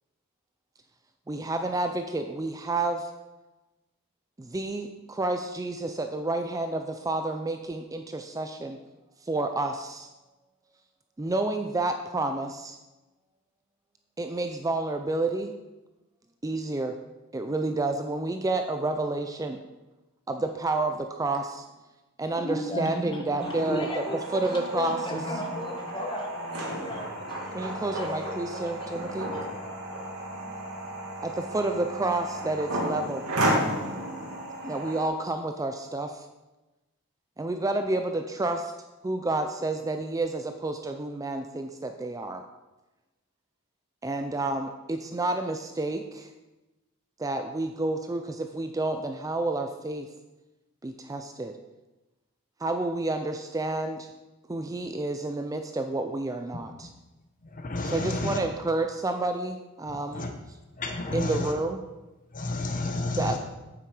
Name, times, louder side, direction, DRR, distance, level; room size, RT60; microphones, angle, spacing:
voice 1, 1.3-3.1 4.4-8.8 9.2-10.1 11.2-12.8 14.2-15.5 16.4-17.0 17.3-19.6 20.3-21.6 22.2-24.0 24.3-25.2 27.5-29.3 31.2-33.2 34.6-36.2 37.4-38.7 39.0-42.4 44.0-46.3 47.2-50.1 50.8-51.6 52.6-54.1 54.5-56.9 57.8-60.3 61.1-61.8 63.2-63.4, right 2 dB, 15° right, 7 dB, 0.4 m, -30 dB
voice 2, 22.3-28.6 28.9-29.5, left 1 dB, 25° left, 1 dB, 1.6 m, -36 dB
sound 1, 23.4-35.1, right 1 dB, 85° right, 2.5 m, -33 dB
voice 3, 56.5-56.9 57.4-58.5 59.9-60.3 60.8-61.5 62.3-63.4, left 2 dB, 40° left, 4 dB, 0.9 m, -31 dB
8.7 x 8.6 x 4.9 m, 1.1 s
head